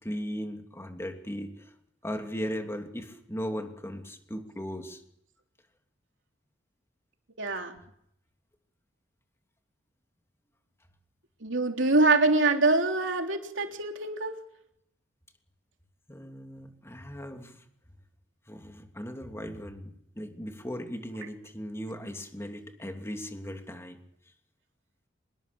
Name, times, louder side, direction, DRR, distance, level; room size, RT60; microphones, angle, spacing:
voice 1, 0.0-1.7 2.0-5.0 16.1-17.6 18.5-24.0, equal, 15° left, 4 dB, 2.9 m, -37 dB
voice 2, 7.4-7.7 11.4-14.3, right 2 dB, 70° right, 3 dB, 3.5 m, -24 dB
25.5 x 20.5 x 7.1 m, 0.71 s
head